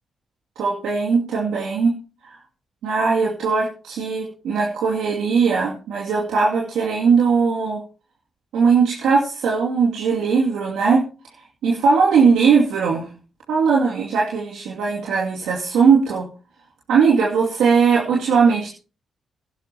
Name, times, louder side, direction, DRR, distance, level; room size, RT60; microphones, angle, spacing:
voice 1, 0.6-2.0 2.2-2.4 2.8-7.8 8.5-11.0 11.6-13.1 13.5-16.3 16.9-18.7, right 5 dB, 90° right, -3 dB, 2.5 m, -19 dB
20.5 x 11.5 x 2.9 m, 0.35 s
supercardioid pair, 60°, 0 cm